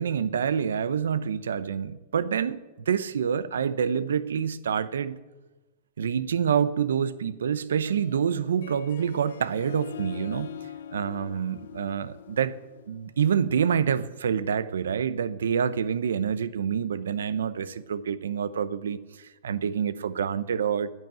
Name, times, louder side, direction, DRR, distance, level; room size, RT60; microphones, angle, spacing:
voice 1, 0.0-5.2 6.0-10.5 10.9-12.6 12.9-20.9, right 7 dB, 85° right, 0.7 m, -27 dB
Harp, 7.7-13.2, left 10 dB, 80° left, 0.7 m, -43 dB
10.5 x 9.5 x 9.0 m
hypercardioid pair, 125°, 0 cm